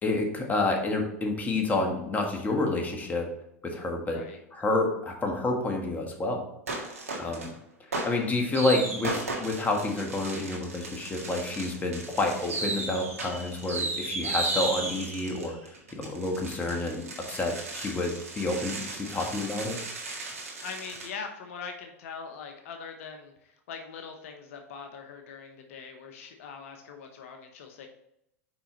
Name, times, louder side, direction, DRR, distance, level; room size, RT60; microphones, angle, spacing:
voice 1, 0.0-3.3 3.6-4.2 4.5-6.4 7.2-7.5 8.0-15.6 15.9-18.1 18.3-19.8, left 2 dB, 20° left, 1 dB, 1.6 m, -29 dB
sound 1, 6.7-7.5 7.9-21.1, right 2 dB, 85° right, 1.7 m, -35 dB
voice 2, 20.6-27.9, left 5 dB, 70° left, 4 dB, 0.9 m, -42 dB
6.2 x 4.9 x 3.9 m, 0.80 s
hypercardioid pair, 100°, 8 cm